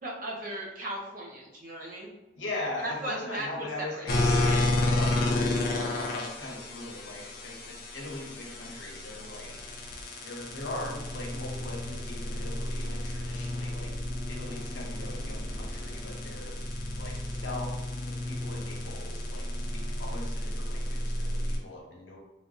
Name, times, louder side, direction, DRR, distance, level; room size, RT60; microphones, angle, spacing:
voice 1, 0.0-2.1 2.8-4.0, right 1 dB, 50° right, -3 dB, 0.7 m, -37 dB
voice 2, 2.3-9.8 10.2-13.9 14.3-16.6 16.9-22.2, left 2 dB, 85° left, -1 dB, 0.8 m, -40 dB
sound 1, 4.1-21.6, left 1 dB, 50° left, 0.5 m, -32 dB
3.3 x 2.5 x 2.4 m, 1.1 s
head